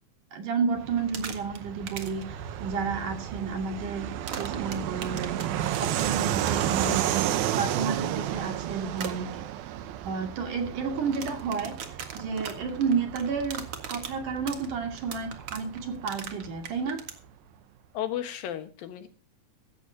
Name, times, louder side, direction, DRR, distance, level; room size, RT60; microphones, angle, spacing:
voice 1, 0.3-5.4 5.8-7.0 7.3-9.4 10.0-11.7 12.1-13.6 13.9-17.0, right 5 dB, 60° right, 5 dB, 4.0 m, -31 dB
Fixed-wing aircraft airplane, 0.8-16.9, right 11 dB, 85° right, 2.8 m, -32 dB
sound 1, 1.0-1.6 1.9-2.2 4.3-6.9 8.9-9.1 11.0-17.2, right 7 dB, 45° right, 2.2 m, -38 dB
voice 2, 17.9-19.1, left 11 dB, 80° left, 9 dB, 3.2 m, -33 dB
16.5 x 15.0 x 2.8 m, 0.35 s
omnidirectional pair, 4.1 m